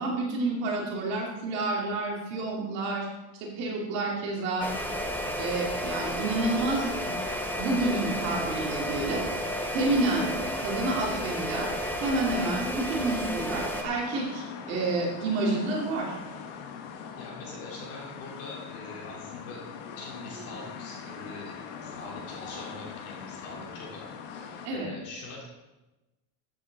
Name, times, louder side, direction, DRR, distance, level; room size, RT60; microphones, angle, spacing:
voice 1, 0.0-3.1 3.4-4.7 5.4-6.9 7.6-9.2 9.7-10.3 10.6-11.7 12.0-16.1 24.6-24.9, right 2 dB, 40° right, -2 dB, 2.6 m, -29 dB
sound 1, 4.6-13.8, equal, 5° left, 0.5 m, -32 dB
sound 2, 13.8-24.7, left 6 dB, 65° left, 1.5 m, -42 dB
voice 2, 17.1-19.6 19.9-21.5 21.8-25.4, left 2 dB, 35° left, -2 dB, 3.1 m, -43 dB
14.0 x 7.8 x 4.1 m, 1.1 s
cardioid pair, 180°, 38 cm